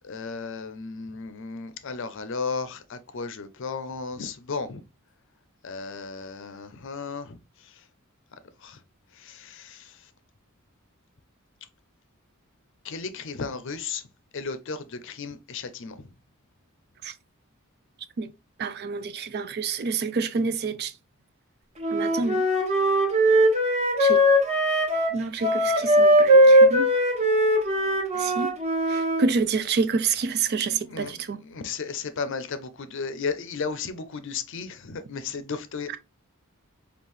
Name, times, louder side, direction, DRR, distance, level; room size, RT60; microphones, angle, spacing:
voice 1, 0.0-4.8 5.6-7.4 8.6-8.8 9.2-10.0 12.8-14.0 14.3-16.1 30.6-36.0, left 5 dB, 60° left, 0.5 m, -34 dB
voice 2, 18.6-20.9 21.9-22.4 24.0-24.2 25.1-26.9 28.1-28.5 28.9-31.4 35.9-36.0, right 4 dB, 45° right, 0.4 m, -28 dB
Wind instrument woodwind instrument, 21.8-29.2, equal, 30° right, 1.1 m, -20 dB
5.4 x 2.4 x 3.1 m
head